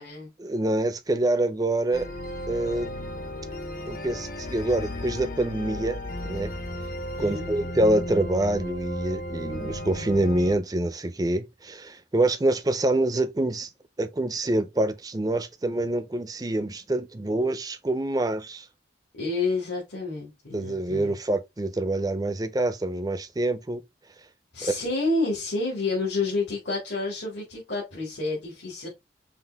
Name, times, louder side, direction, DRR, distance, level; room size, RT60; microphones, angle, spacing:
voice 1, 0.4-2.1 2.5-2.9 3.9-6.0 6.2-6.5 7.2-13.7 14.0-18.7 20.5-23.8 24.6-24.7, right 1 dB, 20° right, 0.5 m, -26 dB
sound 1, 1.9-10.6, left 1 dB, 50° left, 0.7 m, -34 dB
voice 2, 7.2-7.5 19.1-21.1 24.5-28.9, left 3 dB, 80° left, 2.2 m, -29 dB
5.6 x 2.6 x 3.4 m
head